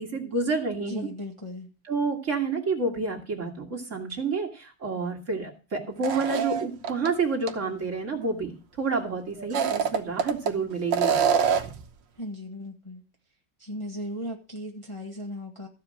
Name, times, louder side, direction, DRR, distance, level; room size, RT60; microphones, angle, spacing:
voice 1, 0.0-1.1 1.9-11.4, right 4 dB, 40° right, 0 dB, 2.2 m, -29 dB
voice 2, 0.7-1.7 12.1-13.0 13.6-15.7, equal, 20° left, 1 dB, 1.4 m, -37 dB
sound 1, 6.0-7.1 7.5-7.6 9.4-10.5 10.9-11.8, right 7 dB, 80° right, 1.7 m, -25 dB
14.0 x 4.9 x 7.4 m, 0.34 s
omnidirectional pair, 1.9 m